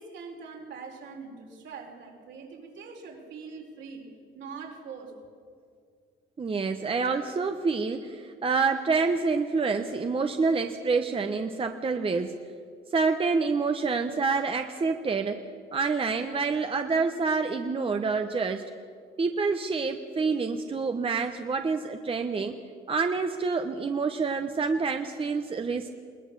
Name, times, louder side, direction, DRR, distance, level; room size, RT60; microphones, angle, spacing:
voice 1, 0.0-4.1 4.3-5.1, right 5 dB, 70° right, 0 dB, 4.6 m, -43 dB
voice 2, 6.4-12.3 12.9-15.4 15.7-18.6 19.2-22.6 22.9-25.9, right 4 dB, 25° right, 6 dB, 1.0 m, -27 dB
21.5 x 19.0 x 6.8 m, 2.1 s
cardioid pair, 100°, 20 cm